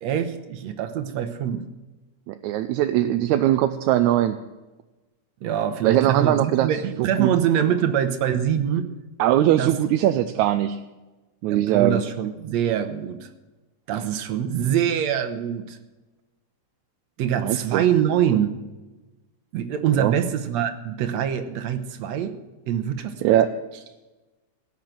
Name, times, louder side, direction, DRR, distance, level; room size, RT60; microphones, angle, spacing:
voice 1, 0.0-1.7 5.4-8.9 9.5-9.8 11.5-13.3 13.9-15.8 17.2-18.6 19.5-22.4 22.7-23.4, right 9 dB, 70° right, 8 dB, 2.2 m, -24 dB
voice 2, 2.3-4.4 5.8-6.7 7.0-7.3 9.2-10.8 11.4-12.0 17.4-17.8 19.9-20.1 23.2-23.8, right 12 dB, 85° right, 9 dB, 2.0 m, -21 dB
18.0 x 6.7 x 9.0 m, 1.1 s
omnidirectional pair, 3.3 m